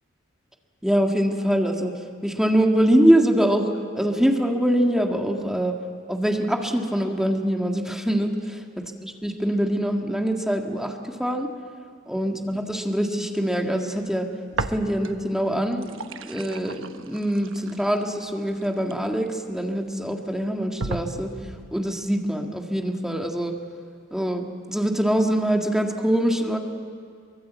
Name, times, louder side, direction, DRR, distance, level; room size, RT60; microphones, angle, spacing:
voice 1, 0.8-1.9 2.2-5.8 6.1-8.3 9.0-11.5 12.1-14.3 14.7-16.0 16.2-21.3 21.7-23.5 24.1-26.6, equal, 5° right, 2 dB, 1.8 m, -23 dB
sound 1, 14.5-15.3 15.6-19.6 20.2-20.3 20.8-21.7, right 3 dB, 85° right, 1.0 m, -34 dB
23.5 x 23.5 x 8.2 m, 2.2 s
head